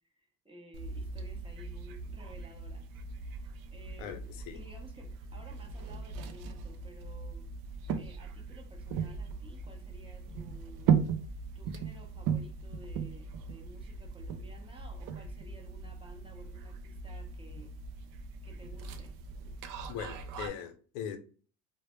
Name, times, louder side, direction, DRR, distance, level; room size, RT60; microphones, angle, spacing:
voice 1, 0.2-2.9 3.2-4.3 4.5-7.5 7.7-11.1 11.5-17.7 18.4-19.2, right 1 dB, 15° right, 0.6 m, -54 dB
sound 1, 0.7-20.5, right 6 dB, 65° right, 0.5 m, -37 dB
voice 2, 19.9-21.2, left 8 dB, 80° left, 0.6 m, -40 dB
2.0 x 2.0 x 3.0 m
supercardioid pair, 95°, 36 cm